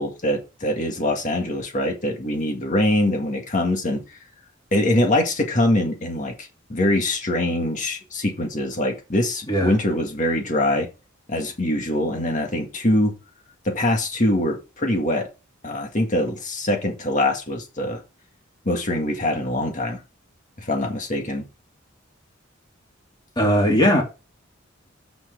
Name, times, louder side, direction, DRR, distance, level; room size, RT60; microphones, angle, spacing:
voice 1, 0.0-4.0 4.7-10.9 11.3-13.1 13.7-15.3 15.6-18.0 18.7-20.0 20.6-21.5, left 1 dB, 40° left, 1.9 m, -23 dB
voice 2, 23.4-24.0, equal, 20° left, 2.7 m, -18 dB
6.0 x 6.0 x 6.5 m
head